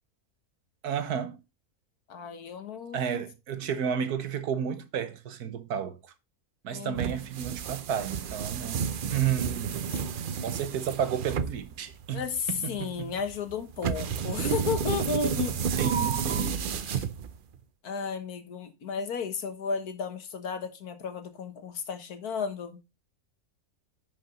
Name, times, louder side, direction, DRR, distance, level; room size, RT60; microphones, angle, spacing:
voice 1, 0.8-1.4 2.9-6.0 6.6-9.8 10.4-12.2 12.6-13.1 15.7-16.6, right 8 dB, 85° right, 1.5 m, -32 dB
voice 2, 2.1-3.2 6.7-7.3 12.1-15.6 16.4-17.0 17.8-22.8, left 5 dB, 80° left, 1.8 m, -34 dB
sound 1, 6.9-17.6, right 7 dB, 65° right, 0.5 m, -31 dB
10.5 x 5.4 x 3.9 m
omnidirectional pair, 1.6 m